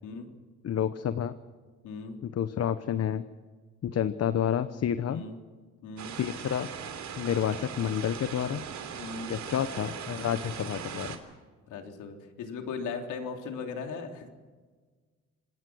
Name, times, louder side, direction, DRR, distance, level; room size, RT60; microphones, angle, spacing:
voice 1, 0.6-1.3 2.2-3.2 3.8-5.2 6.2-6.7 7.2-8.7 9.3-11.2, left 9 dB, 55° left, 12 dB, 1.0 m, -29 dB
voice 2, 1.8-2.3 5.0-5.4 5.8-6.1 9.0-9.3 11.7-14.3, left 4 dB, 85° left, 3 dB, 3.6 m, -38 dB
sound 1, 6.0-11.2, right 7 dB, 70° right, 3.2 m, -39 dB
26.5 x 19.5 x 6.3 m, 1.4 s
cardioid pair, 90°, 30 cm